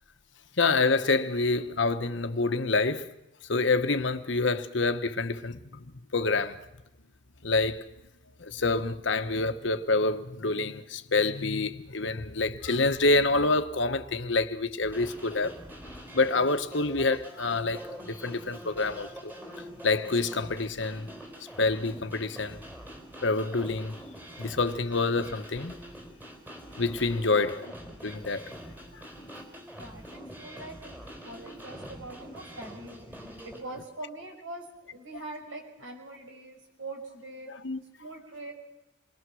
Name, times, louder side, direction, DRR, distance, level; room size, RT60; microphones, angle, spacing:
voice 1, 0.6-3.1 3.5-5.8 6.1-6.6 7.4-7.8 8.4-15.5 16.1-17.8 18.1-19.3 19.8-21.1 21.6-22.6 23.2-24.0 24.4-25.8 26.8-27.7 28.0-28.5 28.9-29.0 37.5-37.8, left 3 dB, 65° left, 1.2 m, -27 dB
sound 1, 14.8-33.6, equal, 10° right, 4.1 m, -45 dB
voice 2, 27.2-27.6 29.7-37.5 38.0-38.5, right 2 dB, 80° right, 6.3 m, -43 dB
28.0 x 21.5 x 6.3 m
head